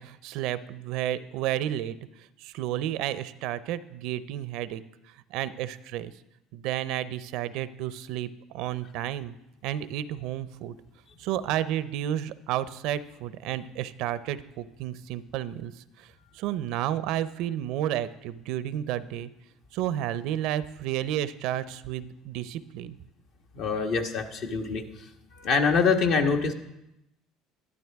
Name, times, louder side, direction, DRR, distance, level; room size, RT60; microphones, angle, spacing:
voice 1, 0.0-2.0 2.4-4.8 5.3-6.1 6.5-8.3 8.5-9.4 9.6-10.8 11.2-15.7 16.3-19.3 19.7-23.0, right 12 dB, 70° right, 15 dB, 0.5 m, -31 dB
voice 2, 23.5-24.8 25.3-26.5, left 5 dB, 65° left, 3 dB, 1.4 m, -24 dB
12.0 x 11.5 x 3.5 m, 0.88 s
supercardioid pair, 85°, 0 cm